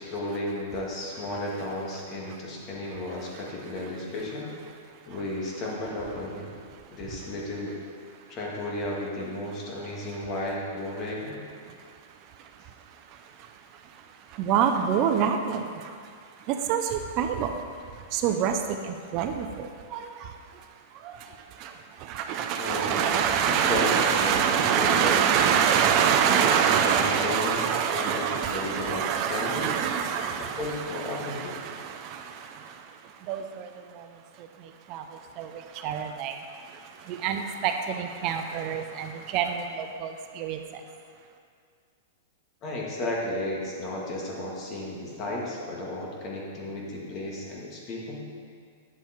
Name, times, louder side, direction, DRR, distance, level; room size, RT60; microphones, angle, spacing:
voice 1, 0.0-4.5 5.1-6.5 6.9-7.8 8.3-11.4 22.6-25.2 26.8-29.7 30.6-31.6 42.6-48.2, left 1 dB, 35° left, -3 dB, 2.4 m, -34 dB
voice 2, 14.3-15.9 16.5-17.6 18.1-20.3 21.0-21.3 21.6-21.7 22.0-32.8 33.3-34.1 34.9-36.4 37.0-40.6, right 7 dB, 40° right, 5 dB, 0.6 m, -26 dB
9.3 x 7.1 x 4.6 m, 2.1 s
hypercardioid pair, 125°, 0 cm